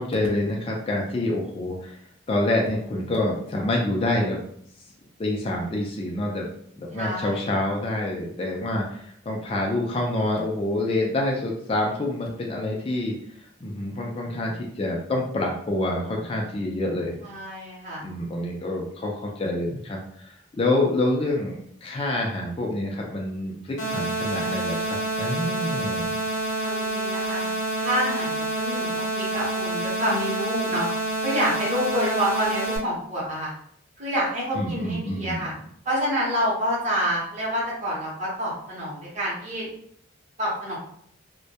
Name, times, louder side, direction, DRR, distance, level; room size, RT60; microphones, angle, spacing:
voice 1, 0.0-2.0 2.3-4.4 5.2-6.5 6.8-13.1 13.6-17.2 18.0-26.2 34.5-35.5, left 1 dB, 30° left, -1 dB, 0.3 m, -27 dB
voice 2, 6.9-7.4 17.2-18.1 24.3-24.7 26.6-30.9 31.2-33.5 34.0-35.5 35.8-39.7 40.4-40.8, equal, 35° right, -6 dB, 0.7 m, -28 dB
sound 1, 23.8-32.8, right 2 dB, 75° left, 0.7 m, -28 dB
2.2 x 2.1 x 2.7 m, 0.65 s
head